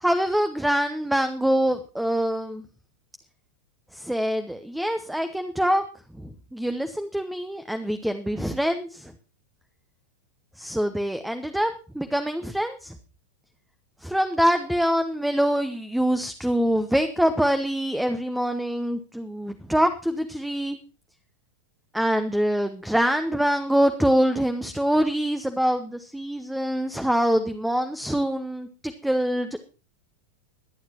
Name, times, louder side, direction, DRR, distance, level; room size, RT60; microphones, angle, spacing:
voice 1, 0.0-2.6 3.9-5.8 6.1-9.1 10.6-12.9 14.0-20.8 21.9-29.6, equal, ahead, 8 dB, 0.9 m, -25 dB
22.0 x 9.3 x 3.0 m, 0.34 s
figure-of-eight pair, 90°, 0 cm